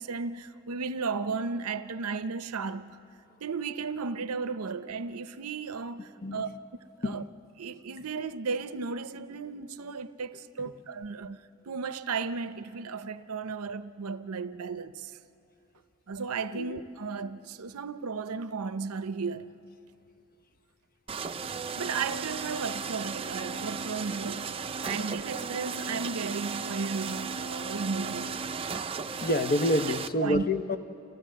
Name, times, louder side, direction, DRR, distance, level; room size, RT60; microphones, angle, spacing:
voice 1, 0.0-3.0 3.4-6.5 7.0-7.2 7.6-11.4 11.7-15.2 16.1-19.5 21.8-24.6 24.8-28.4 30.2-30.4, right 4 dB, 85° right, 0.6 m, -34 dB
voice 2, 6.2-6.5 7.0-7.2 16.5-16.8 29.2-30.8, left 1 dB, 40° left, 0.7 m, -27 dB
sound 1, 21.1-30.1, right 5 dB, 25° right, 0.5 m, -35 dB
29.0 x 15.5 x 7.5 m
head